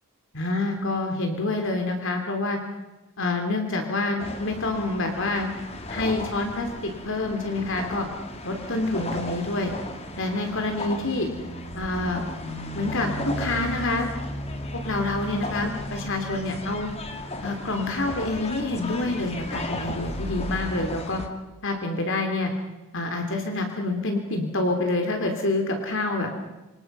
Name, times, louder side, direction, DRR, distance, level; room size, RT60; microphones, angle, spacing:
voice 1, 0.3-2.6 3.2-5.5 5.9-8.1 8.4-9.7 10.2-11.3 11.7-12.2 12.7-14.1 14.7-16.9 17.4-21.2 21.6-22.5 22.9-26.3, left 2 dB, 60° left, 4 dB, 3.2 m, -27 dB
sound 1, 4.2-21.3, left 1 dB, 30° left, 2.4 m, -35 dB
27.5 x 26.5 x 5.6 m, 1.1 s
head